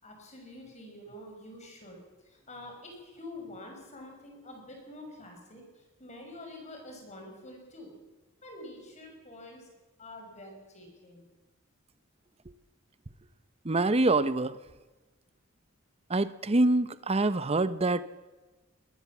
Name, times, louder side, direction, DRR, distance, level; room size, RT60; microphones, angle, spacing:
voice 1, 0.0-2.0 2.2-7.9 8.4-9.7 10.0-11.2, left 1 dB, 35° left, 3 dB, 5.8 m, -47 dB
voice 2, 13.6-14.6 16.1-18.0, right 2 dB, 30° right, 14 dB, 0.8 m, -25 dB
21.5 x 17.5 x 7.2 m, 1.2 s
head